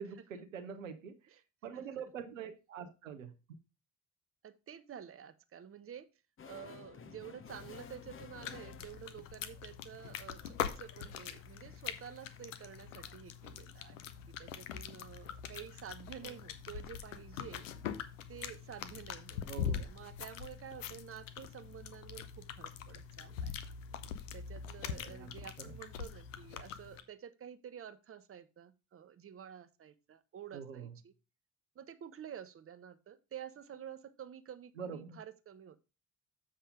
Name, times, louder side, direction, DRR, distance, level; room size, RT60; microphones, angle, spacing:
voice 1, 0.0-1.1 1.6-3.3 16.2-16.4 19.5-19.9 24.9-25.7 30.5-30.9 34.8-35.2, right 7 dB, 85° right, 0.8 m, -45 dB
voice 2, 1.7-2.1 4.4-6.1 6.4-14.1 14.4-17.7 18.3-23.5 24.3-31.1 31.7-35.8, right 9 dB, 35° right, 0.9 m, -50 dB
sound 1, 6.4-13.1, left 7 dB, 35° left, 0.9 m, -55 dB
sound 2, 7.5-27.0, left 8 dB, 80° left, 0.7 m, -43 dB
7.3 x 5.5 x 5.1 m
figure-of-eight pair, 45°, 38 cm